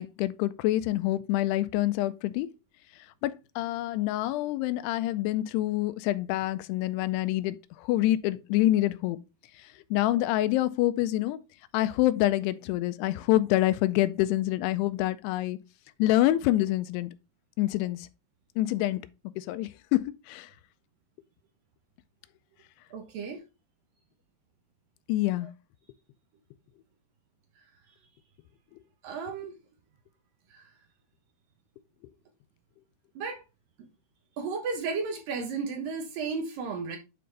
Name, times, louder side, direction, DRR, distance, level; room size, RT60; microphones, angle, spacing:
voice 1, 0.0-2.5 3.2-9.2 9.6-11.4 11.7-15.6 16.0-17.1 17.6-18.1 18.6-19.0 19.4-20.5 25.1-25.5, left 15 dB, 85° left, 2.6 m, -26 dB
voice 2, 22.9-23.4 25.4-25.5 29.0-29.5 30.5-30.6 33.2-33.4 34.4-37.0, right 4 dB, 70° right, 2.4 m, -33 dB
9.3 x 3.9 x 3.3 m
omnidirectional pair, 4.7 m